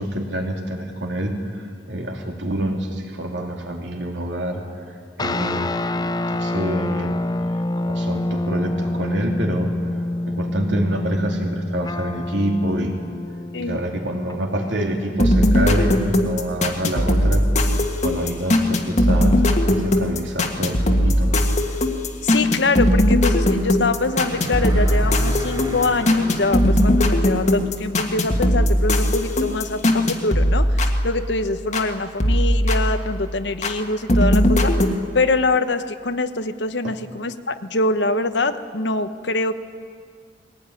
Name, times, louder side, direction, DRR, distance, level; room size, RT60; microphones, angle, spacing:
voice 1, 0.0-4.6 5.2-5.8 6.3-7.2 7.8-9.7 10.2-12.9 13.6-17.5 18.0-21.5 36.8-36.9, right 1 dB, 70° right, 1 dB, 3.1 m, -26 dB
sound 1, 5.2-14.9, left 1 dB, 20° left, 0.5 m, -27 dB
sound 2, 15.2-31.9 32.2-33.8 34.1-34.9, left 1 dB, 40° left, 1.6 m, -19 dB
voice 2, 22.2-34.7 35.1-39.5, left 3 dB, 70° left, 10 dB, 1.0 m, -24 dB
sound 3, 23.9-27.7, equal, 20° right, 1.4 m, -35 dB
20.5 x 17.0 x 9.8 m, 2.1 s
head